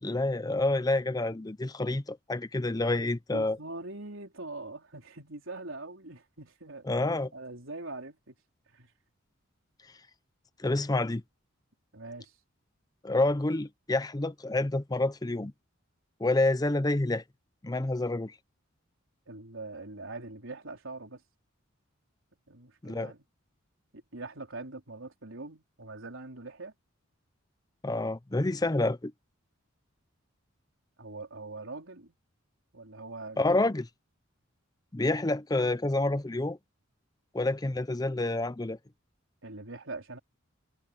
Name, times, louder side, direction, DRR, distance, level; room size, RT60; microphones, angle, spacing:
voice 1, 0.0-3.6 6.9-7.3 10.6-11.2 13.0-15.5 16.2-17.2 17.6-18.3 22.8-23.1 27.8-29.1 33.4-33.9 34.9-36.6 37.3-38.8, left 2 dB, 20° left, 0.6 m, -28 dB
voice 2, 3.3-8.4 8.7-8.9 11.9-12.4 19.3-21.2 22.5-23.2 23.9-26.7 31.0-32.1 32.7-33.7 39.4-40.2, right 2 dB, 75° right, 4.1 m, -43 dB
head